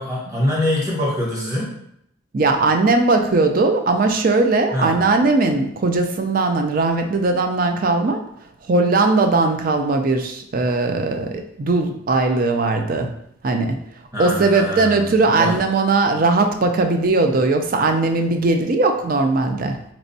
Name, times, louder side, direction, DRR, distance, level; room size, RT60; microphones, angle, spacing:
voice 1, 0.0-1.7 4.7-5.0 14.1-15.6, left 1 dB, 15° right, -4 dB, 1.0 m, -24 dB
voice 2, 2.3-8.2 8.7-13.1 13.4-13.8 14.2-19.8, right 3 dB, 45° right, 5 dB, 0.4 m, -19 dB
4.3 x 3.0 x 2.7 m, 0.74 s
head